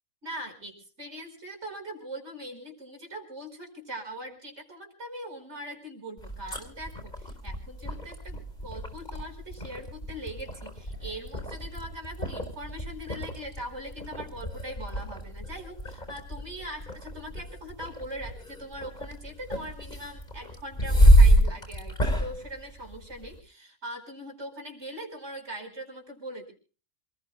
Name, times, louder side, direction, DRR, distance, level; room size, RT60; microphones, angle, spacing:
voice 1, 0.2-26.5, right 1 dB, 60° right, 4 dB, 5.3 m, -41 dB
drinking a glass of water, 6.2-23.4, equal, 35° left, 4.5 m, -27 dB
28.0 x 19.5 x 2.2 m, 0.38 s
omnidirectional pair, 1.3 m